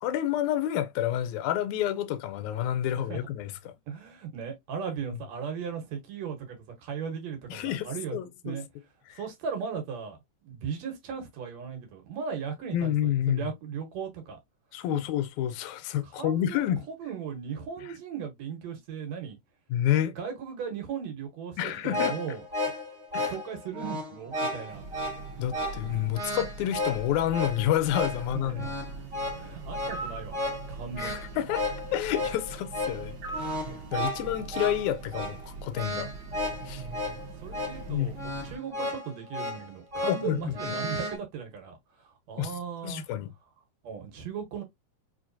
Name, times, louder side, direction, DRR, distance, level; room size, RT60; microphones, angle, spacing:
voice 1, 0.0-3.7 7.5-8.6 9.1-9.2 12.7-13.5 14.7-16.9 19.7-20.1 21.6-22.2 23.1-23.3 25.4-28.8 31.0-31.7 31.9-33.7 33.9-36.1 36.7-36.8 37.9-38.1 40.1-40.7 42.4-42.5 42.8-43.3, left 11 dB, 85° left, 2.0 m, -29 dB
voice 2, 3.9-8.2 8.4-8.7 9.1-10.2 10.4-14.4 14.9-15.0 16.0-16.7 17.0-19.4 20.1-22.4 23.2-24.9 28.3-28.7 29.4-30.4 30.7-31.2 37.2-43.0 43.8-44.6, right 6 dB, 70° right, 2.2 m, -37 dB
sound 1, 21.7-41.2, left 1 dB, 25° right, 2.2 m, -34 dB
Train, 24.7-38.6, right 4 dB, 85° right, 1.0 m, -43 dB
sound 2, 29.9-30.3 33.2-33.6, right 3 dB, 55° right, 1.5 m, -37 dB
4.5 x 3.0 x 2.6 m
omnidirectional pair, 3.3 m